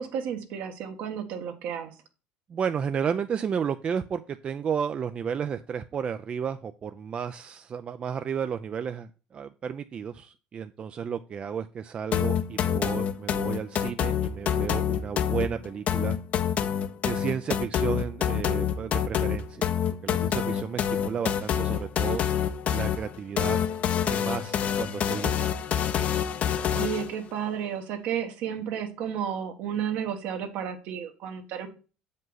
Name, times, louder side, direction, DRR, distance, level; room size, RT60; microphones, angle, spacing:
voice 1, 0.0-1.9 26.7-31.7, right 8 dB, 70° right, 5 dB, 1.5 m, -32 dB
voice 2, 2.5-16.2 17.0-19.7 20.0-22.2 22.7-23.6 24.1-25.6, right 7 dB, 35° right, 9 dB, 0.4 m, -32 dB
sound 1, 12.1-27.1, left 8 dB, 45° left, 0.7 m, -27 dB
7.4 x 5.4 x 3.9 m, 0.34 s
supercardioid pair, 100°, 3 cm